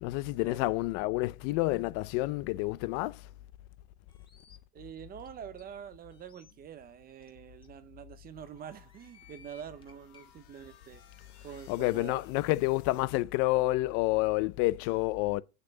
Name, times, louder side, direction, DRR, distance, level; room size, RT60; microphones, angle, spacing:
voice 1, 0.0-3.3 11.7-15.4, left 19 dB, 35° left, 0.5 m, -29 dB
sound 1, 4.1-4.6 5.2-5.3 5.6-5.7 6.1-6.5 7.2-7.3 7.6-7.7 8.7-10.3, left 6 dB, 10° left, 1.1 m, -59 dB
voice 2, 4.7-12.3, right 9 dB, 20° right, 0.6 m, -46 dB
sound 2, 8.3-13.1, left 9 dB, 75° left, 2.6 m, -61 dB
7.6 x 6.7 x 7.1 m
supercardioid pair, 135°, 45 cm